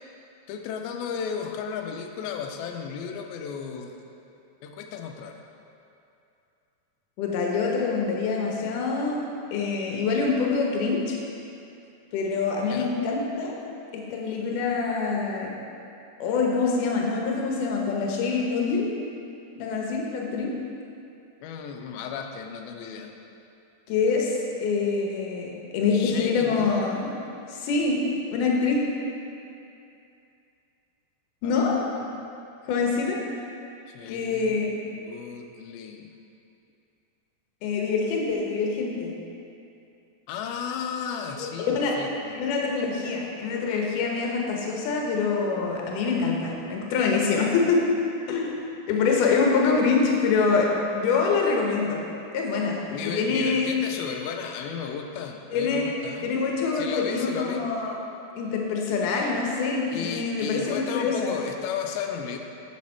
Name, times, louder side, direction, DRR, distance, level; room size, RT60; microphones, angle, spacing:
voice 1, 0.5-4.0 4.6-5.4 12.6-12.9 21.4-23.1 25.9-26.9 31.4-32.1 33.9-34.6 34.9-36.1 40.3-42.4 52.9-56.3 56.7-57.6 59.9-62.4, left 6 dB, 85° left, 4 dB, 2.5 m, -34 dB
voice 2, 7.2-9.2 9.5-11.2 12.1-13.6 13.9-15.5 16.2-18.9 19.6-20.5 23.9-27.2 27.5-28.0 28.3-28.8 31.4-31.7 32.7-33.2 34.1-34.7 37.6-39.1 41.4-41.9 42.3-47.8 48.3-48.5 48.9-52.0 52.3-53.7 55.5-55.9 56.2-58.0 58.4-61.3, left 4 dB, 70° left, -1 dB, 2.3 m, -25 dB
7.3 x 6.5 x 4.4 m, 2.7 s
omnidirectional pair, 4.3 m